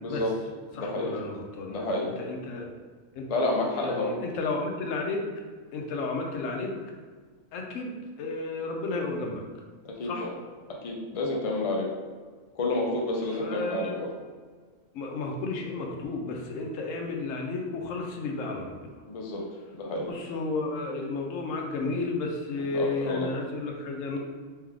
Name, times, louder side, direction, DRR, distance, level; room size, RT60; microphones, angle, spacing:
voice 1, 0.0-0.3 0.7-1.2 1.7-2.1 3.3-4.1 9.8-10.3 10.8-11.9 12.6-14.1 19.1-19.4 19.7-20.1 22.6-23.3, left 2 dB, 40° left, -1 dB, 0.5 m, -29 dB
voice 2, 0.7-1.8 2.2-2.7 3.2-3.3 3.7-5.2 5.7-6.7 7.5-7.9 8.2-9.4 10.0-10.3 13.4-14.0 14.9-19.0 20.1-24.2, left 3 dB, 70° left, 1 dB, 1.0 m, -32 dB
3.5 x 3.2 x 3.5 m, 1.5 s
omnidirectional pair, 1.4 m